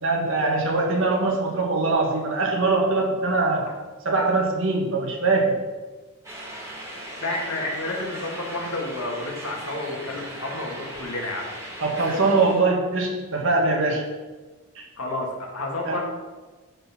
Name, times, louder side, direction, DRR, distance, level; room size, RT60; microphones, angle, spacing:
voice 1, 0.0-3.7 4.1-5.6 11.8-14.1 14.8-14.9 15.9-16.0, right 3 dB, 60° right, 0 dB, 1.7 m, -22 dB
sound 1, 6.2-12.6, right 1 dB, 15° right, 1.6 m, -38 dB
voice 2, 7.2-11.4 15.0-16.0, left 2 dB, 75° left, -1 dB, 2.1 m, -30 dB
10.0 x 4.4 x 5.9 m, 1.3 s
head